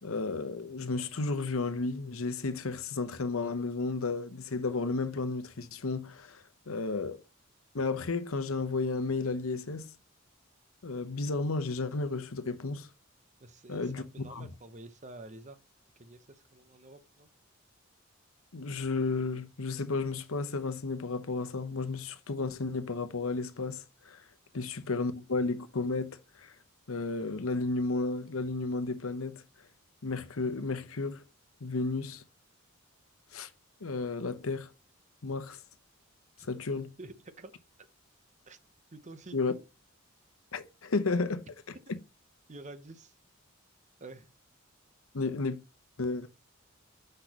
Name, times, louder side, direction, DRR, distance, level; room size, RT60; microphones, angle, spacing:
voice 1, 0.0-7.2 7.7-9.9 10.8-12.9 13.7-14.0 14.3-14.5 18.5-24.2 24.5-26.5 26.9-29.4 30.0-31.2 31.6-32.2 33.3-33.5 33.8-34.7 35.2-35.6 36.4-36.9 39.3-39.5 40.5-41.4 41.9-42.0 45.1-45.6 46.0-46.3, left 3 dB, 80° left, 0.9 m, -33 dB
voice 2, 13.4-15.6 16.0-17.3 24.5-24.7 36.4-36.5 37.0-37.5 37.8-37.9 38.5-38.6 38.9-39.4 42.5-43.1 44.0-44.3, right 2 dB, 35° right, 0.8 m, -49 dB
6.6 x 6.1 x 2.9 m
head